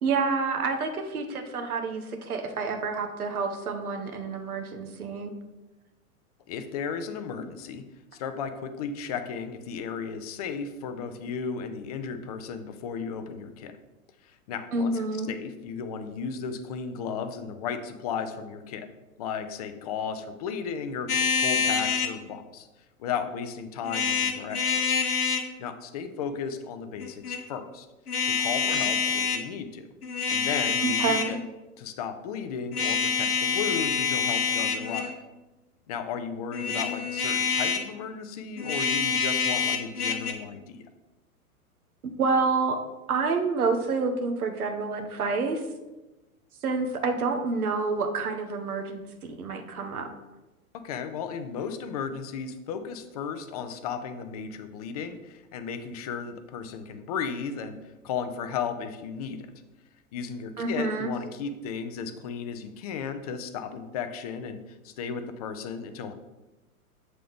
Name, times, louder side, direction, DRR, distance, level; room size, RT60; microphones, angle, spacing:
voice 1, 0.0-5.3 14.7-15.3 30.8-31.4 42.0-42.8 43.1-45.6 46.6-50.1 60.6-61.1, right 4 dB, 75° right, 5 dB, 0.9 m, -28 dB
voice 2, 6.5-7.8 8.1-13.7 14.2-18.9 19.2-22.7 23.0-25.0 25.6-27.9 28.2-29.9 30.3-31.4 31.8-35.1 35.9-40.8 50.7-59.5 60.1-66.1, left 6 dB, 30° left, 9 dB, 0.4 m, -35 dB
sound 1, 21.1-22.2 23.8-25.5 27.0-27.4 28.1-29.4 30.0-31.4 32.7-35.2 36.5-37.9 38.6-40.3, left 6 dB, 85° left, 0.8 m, -26 dB
7.4 x 3.9 x 3.4 m, 1.1 s
figure-of-eight pair, 105°, 44 cm